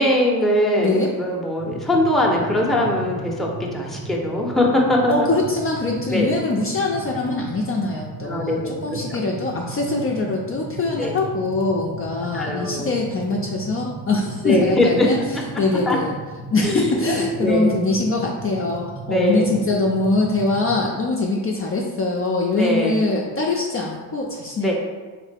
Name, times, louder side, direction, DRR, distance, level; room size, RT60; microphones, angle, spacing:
voice 1, 0.0-5.3 6.1-6.3 8.3-8.7 9.1-9.2 11.0-11.2 12.3-12.9 14.4-15.1 15.9-16.0 16.6-17.8 19.1-19.6 22.6-23.0 24.6-24.7, left 1 dB, ahead, -2 dB, 0.7 m, -21 dB
voice 2, 0.8-1.1 5.1-15.2 15.6-16.1 16.5-24.7, left 3 dB, 35° left, -2 dB, 0.5 m, -23 dB
sound 1, 1.6-20.9, right 3 dB, 90° right, 1.4 m, -36 dB
3.6 x 3.3 x 3.4 m, 1.4 s
cardioid pair, 85°, 41 cm